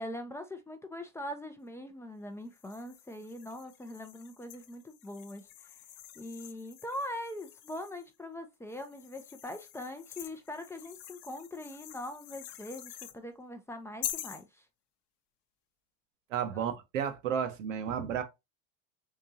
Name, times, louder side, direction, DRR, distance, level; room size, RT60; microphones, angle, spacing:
voice 1, 0.0-5.8 6.2-14.6 16.5-16.6, left 1 dB, 5° left, 0.4 m, -42 dB
sound 1, 2.5-8.1 8.7-13.2 14.0-14.4, left 12 dB, 50° left, 0.7 m, -46 dB
voice 2, 16.3-18.2, right 8 dB, 85° right, 1.1 m, -32 dB
3.7 x 3.6 x 2.7 m
supercardioid pair, 120°, 37 cm